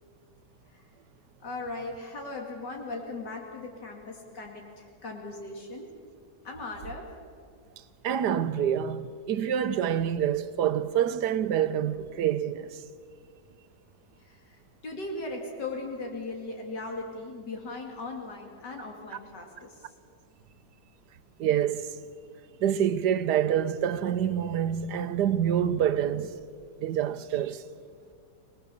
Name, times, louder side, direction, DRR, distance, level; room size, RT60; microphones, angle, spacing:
voice 1, 1.4-5.9 6.4-7.1 14.2-19.8, left 2 dB, 75° left, 2.9 m, -38 dB
voice 2, 8.0-12.8 21.4-21.9 22.6-26.3 26.8-27.6, right 9 dB, 75° right, 1.4 m, -26 dB
25.5 x 20.0 x 6.9 m
omnidirectional pair, 1.8 m